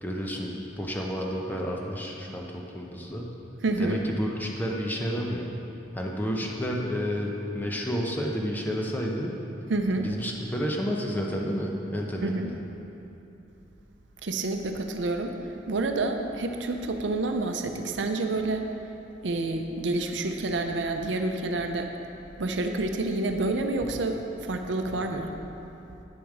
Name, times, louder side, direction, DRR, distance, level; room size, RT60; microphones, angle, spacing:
voice 1, 0.0-3.3 3.8-5.5 5.9-9.3 10.0-12.6, equal, 10° left, -1 dB, 0.8 m, -30 dB
voice 2, 3.6-4.0 9.7-10.1 12.2-12.5 14.2-18.7 19.2-21.9 22.4-25.3, right 2 dB, 75° right, 5 dB, 0.6 m, -28 dB
8.9 x 7.0 x 4.9 m, 2.9 s
head